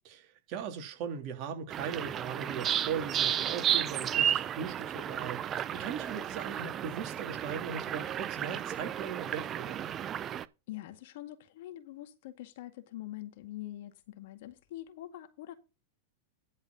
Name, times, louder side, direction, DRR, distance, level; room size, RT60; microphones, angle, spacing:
voice 1, 0.5-9.9, right 7 dB, 45° right, 3.3 m, -39 dB
sound 1, 1.7-10.5, right 10 dB, 30° right, 0.7 m, -33 dB
voice 2, 10.7-15.5, left 14 dB, 65° left, 1.9 m, -44 dB
11.0 x 4.7 x 6.9 m
hypercardioid pair, 110°, 0 cm